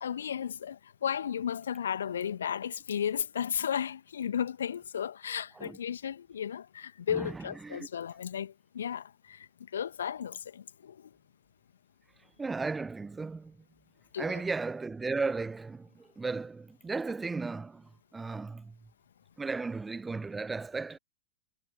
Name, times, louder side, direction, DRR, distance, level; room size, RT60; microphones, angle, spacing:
voice 1, 0.0-9.4 9.7-10.9 14.1-14.4, left 8 dB, 65° left, 2.3 m, -34 dB
voice 2, 7.1-7.9 12.4-13.6 14.2-18.8 19.4-21.0, right 4 dB, 10° right, 0.9 m, -35 dB
figure-of-eight pair, 90°, 0 cm